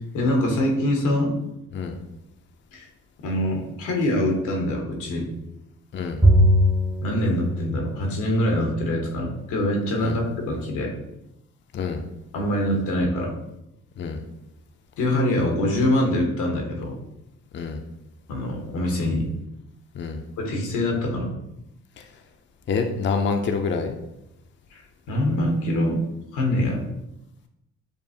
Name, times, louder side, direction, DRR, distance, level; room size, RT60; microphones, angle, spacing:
voice 1, 0.1-1.3 2.7-2.9 3.2-5.3 7.0-10.9 12.3-13.3 15.0-17.0 18.3-19.2 20.4-21.3 24.7-24.8 25.1-26.0 26.3-26.8, left 1 dB, 90° left, 0 dB, 1.1 m, -24 dB
Bowed string instrument, 6.2-8.8, equal, 10° right, 0.6 m, -21 dB
voice 2, 22.7-23.9, left 5 dB, 40° left, 5 dB, 0.5 m, -26 dB
6.8 x 2.4 x 2.7 m, 0.87 s
cardioid pair, 90°, 30 cm